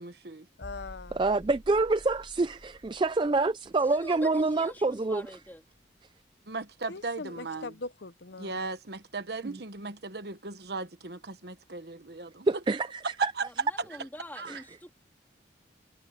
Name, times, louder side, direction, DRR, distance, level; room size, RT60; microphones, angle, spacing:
voice 1, 0.0-0.5 6.5-7.7 8.4-12.5 13.2-13.4 14.4-14.6, right 3 dB, 60° right, 1.2 m, -37 dB
voice 2, 0.6-1.2 6.9-8.6, left 3 dB, 65° left, 0.8 m, -41 dB
sound 1, 0.6-6.3 6.6-6.8, equal, 45° left, 3.0 m, -51 dB
voice 3, 1.1-5.2 9.4-9.5 12.5-13.3 14.5-14.6, right 3 dB, 25° right, 0.3 m, -27 dB
voice 4, 3.8-5.6 13.4-14.9, left 1 dB, 10° left, 3.2 m, -45 dB
head